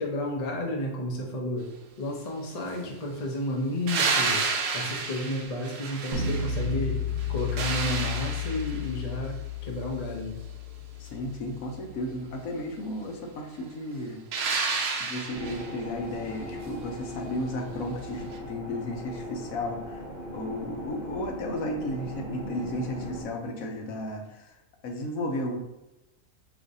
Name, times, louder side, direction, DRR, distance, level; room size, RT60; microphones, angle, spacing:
voice 1, 0.0-1.7 2.0-4.4 4.7-7.0 7.3-10.4, left 1 dB, 50° left, 0 dB, 0.4 m, -32 dB
sound 1, 3.9-6.8 7.2-8.9 14.3-15.8 18.3-18.4, right 4 dB, 85° right, 1.2 m, -30 dB
sound 2, 6.1-12.1, left 6 dB, 65° right, 1.1 m, -33 dB
voice 2, 11.0-14.2 15.0-20.0 20.3-24.5 24.8-25.6, left 1 dB, 70° left, 3 dB, 1.0 m, -34 dB
sound 3, 15.3-23.2, equal, 45° right, 0.6 m, -39 dB
5.0 x 3.0 x 2.6 m, 0.99 s
omnidirectional pair, 1.7 m